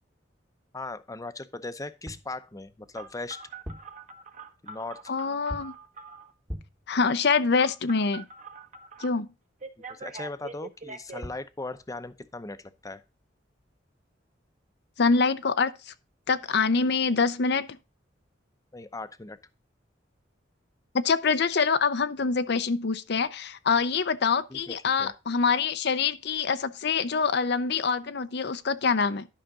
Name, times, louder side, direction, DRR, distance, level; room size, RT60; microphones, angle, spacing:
voice 1, 0.7-3.4 4.6-5.1 9.9-13.0 18.7-19.4 24.5-25.1, left 2 dB, 20° left, 0.7 m, -38 dB
sound 1, 2.0-2.4 3.5-4.0 5.5-5.9 6.5-6.9 10.9-11.0 11.2-11.5, equal, 10° right, 1.1 m, -40 dB
Telephone, 2.9-6.3 7.6-9.1 9.6-11.2, right 4 dB, 40° right, 1.1 m, -43 dB
voice 2, 5.1-5.7 6.9-8.2 9.0-9.3 15.0-15.9 16.3-17.7 20.9-29.3, left 5 dB, 65° left, 0.6 m, -25 dB
11.5 x 5.8 x 3.7 m
head